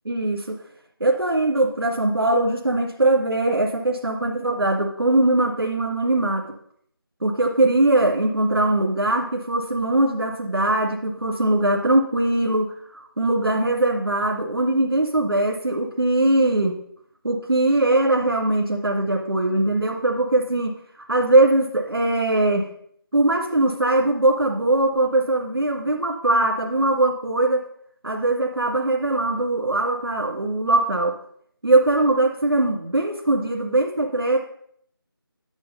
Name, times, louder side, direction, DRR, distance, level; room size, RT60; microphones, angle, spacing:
voice 1, 0.1-0.6 1.0-6.4 7.2-16.8 17.2-20.7 21.1-22.7 23.1-27.6 28.0-31.1 31.6-34.4, right 2 dB, 80° right, -1 dB, 2.1 m, -21 dB
10.5 x 6.0 x 5.5 m, 0.66 s
figure-of-eight pair, 170°, 12 cm